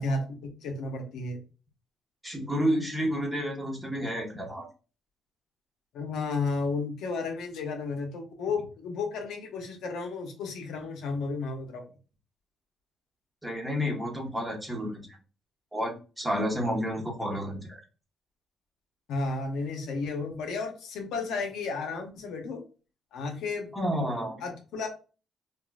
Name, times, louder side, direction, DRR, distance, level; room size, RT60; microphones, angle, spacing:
voice 1, 0.0-1.4 5.9-11.8 19.1-22.6 23.1-23.7 24.4-24.9, left 3 dB, 80° left, 3 dB, 0.7 m, -33 dB
voice 2, 2.2-4.7 13.4-15.1 15.7-17.8 23.7-24.4, equal, 10° right, -1 dB, 1.2 m, -30 dB
3.7 x 2.4 x 2.3 m, 0.35 s
cardioid pair, 90°, 0 cm